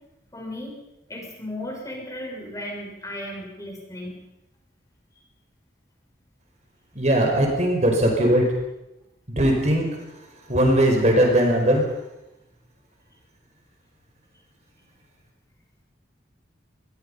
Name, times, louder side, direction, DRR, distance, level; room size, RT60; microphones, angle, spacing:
voice 1, 0.3-0.8 1.1-4.2, left 1 dB, 20° left, 0 dB, 6.1 m, -35 dB
voice 2, 6.9-8.4 9.3-9.9 10.5-11.8, right 1 dB, 40° right, 2 dB, 5.2 m, -19 dB
26.5 x 21.5 x 5.6 m, 0.92 s
head